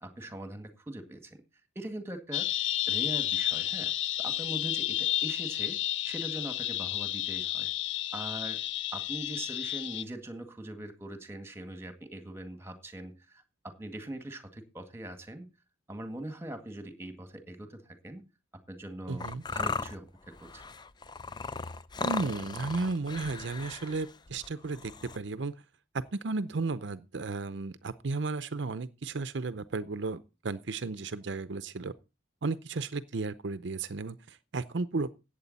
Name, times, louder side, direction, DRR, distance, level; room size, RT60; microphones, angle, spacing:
voice 1, 0.0-1.4 1.8-2.5 2.9-3.9 4.2-5.8 6.0-7.7 8.1-8.6 8.9-15.5 15.9-18.2 18.7-20.6, right 1 dB, 15° right, 1.9 m, -41 dB
sound 1, 2.3-10.0, left 13 dB, 75° left, 0.5 m, -31 dB
voice 2, 19.1-19.4 22.0-25.5 25.9-31.9 32.4-35.1, right 3 dB, 65° right, 0.6 m, -34 dB
sound 2, 19.2-25.2, left 4 dB, 20° left, 0.5 m, -37 dB
14.0 x 8.9 x 4.1 m
head